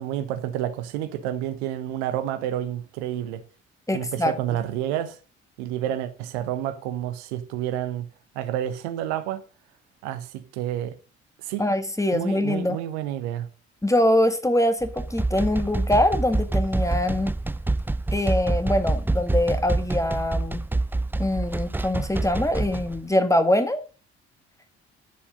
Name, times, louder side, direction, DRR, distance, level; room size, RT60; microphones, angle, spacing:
voice 1, 0.0-3.4 3.9-5.2 5.6-8.1 8.3-9.4 10.0-11.0 11.4-11.6 12.1-13.5, right 11 dB, 75° right, 1.1 m, -29 dB
voice 2, 3.9-4.3 11.6-12.8 13.8-17.3 18.1-20.7 21.2-23.8, left 1 dB, 10° left, 1.9 m, -23 dB
sound 1, 14.8-23.0, right 2 dB, 5° right, 0.4 m, -27 dB
10.5 x 7.1 x 5.1 m
figure-of-eight pair, 45°, 34 cm